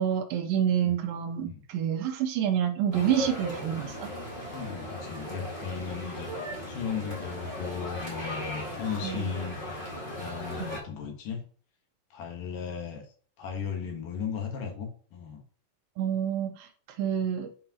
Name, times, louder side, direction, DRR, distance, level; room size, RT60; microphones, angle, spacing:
voice 1, 0.0-4.1 9.0-9.2 16.0-16.7 17.0-17.5, right 9 dB, 75° right, 6 dB, 2.4 m, -28 dB
sound 1, 2.9-10.8, left 1 dB, 30° left, 0.9 m, -37 dB
voice 2, 4.5-9.6 10.1-11.4 12.1-13.1 13.4-15.4, left 7 dB, 70° left, 2 dB, 2.8 m, -36 dB
7.6 x 4.9 x 2.9 m, 0.42 s
omnidirectional pair, 4.3 m